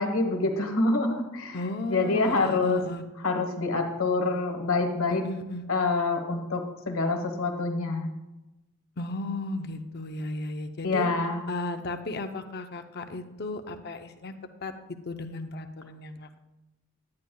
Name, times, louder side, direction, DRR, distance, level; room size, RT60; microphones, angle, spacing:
voice 1, 0.0-1.6 1.9-2.8 3.2-5.2 5.7-8.1 10.8-11.4, left 3 dB, 85° left, 4 dB, 1.2 m, -26 dB
voice 2, 1.5-3.0 5.1-5.6 9.0-11.1 11.5-14.3 14.6-16.4, left 2 dB, 50° left, 7 dB, 0.6 m, -35 dB
10.5 x 8.9 x 2.3 m, 0.98 s
head